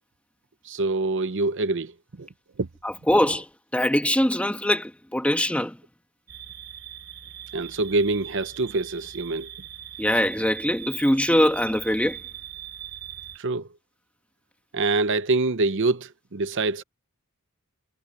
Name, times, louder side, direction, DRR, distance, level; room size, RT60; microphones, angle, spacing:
voice 1, 0.6-2.3 2.6-2.7 7.5-9.5 13.4-13.7 14.7-16.8, right 3 dB, 55° right, 0.8 m, -25 dB
voice 2, 2.8-3.5 3.7-5.8 10.0-12.2, left 1 dB, 5° left, 1.9 m, -22 dB
sound 1, 6.3-13.4, right 10 dB, 75° right, 3.7 m, -41 dB
head